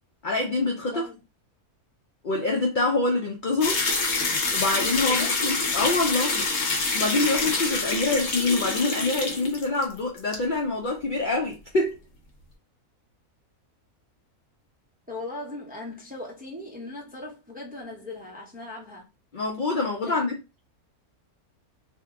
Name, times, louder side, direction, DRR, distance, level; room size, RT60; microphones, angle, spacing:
voice 1, 0.2-1.0 2.2-3.8 4.5-6.4 6.9-12.0 19.3-20.4, left 3 dB, 85° left, 0.4 m, -25 dB
sound 1, 3.6-9.9 10.2-10.4, left 3 dB, 60° left, 1.1 m, -26 dB
voice 2, 15.1-19.0 20.0-20.3, left 2 dB, 10° right, 0.4 m, -38 dB
2.7 x 2.2 x 3.5 m
omnidirectional pair, 1.6 m